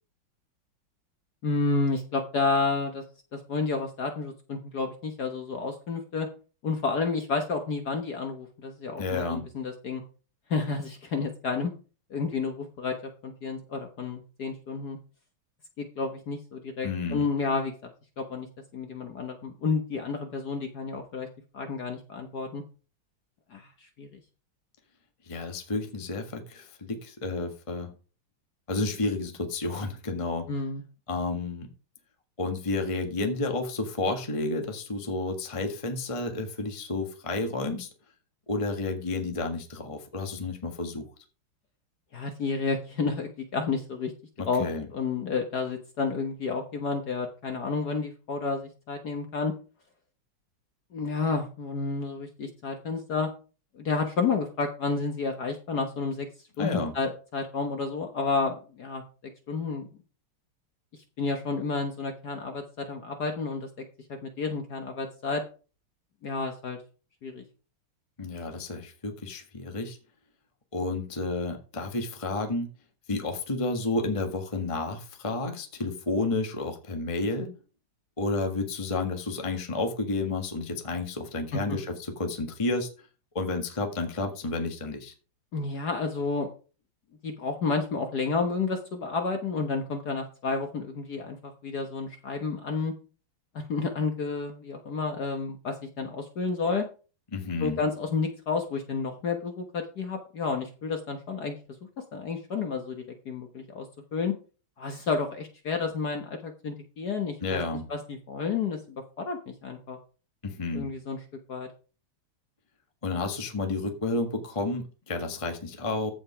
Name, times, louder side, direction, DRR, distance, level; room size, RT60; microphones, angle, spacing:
voice 1, 1.4-3.0 3.3-6.3 6.6-10.0 10.5-11.7 12.1-15.0 15.8-17.9 18.2-18.5 18.7-21.3 21.5-22.6 23.5-23.7 24.0-24.2 30.5-30.8 42.1-44.1 44.5-44.7 44.9-49.5 50.9-53.3 53.7-56.3 56.6-59.0 59.5-59.9 61.2-63.7 64.1-65.4 66.2-66.8 67.2-67.4 81.5-81.6 85.5-86.5 87.2-92.9 93.5-96.9 97.6-101.6 102.1-104.3 104.8-107.6 107.9-110.0 110.7-111.2 111.5-111.7, left 4 dB, 50° left, 5 dB, 1.5 m, -30 dB
voice 2, 9.0-9.5 16.8-17.2 25.2-27.9 28.7-30.5 31.1-31.7 32.4-37.9 38.5-41.1 44.4-44.9 56.6-56.9 68.2-70.0 70.7-72.7 73.1-77.5 78.2-83.1 83.3-85.1 97.3-97.8 107.4-107.8 110.4-110.9 113.0-116.1, left 3 dB, 15° left, 4 dB, 1.4 m, -31 dB
14.5 x 5.2 x 5.0 m, 0.36 s
omnidirectional pair, 2.4 m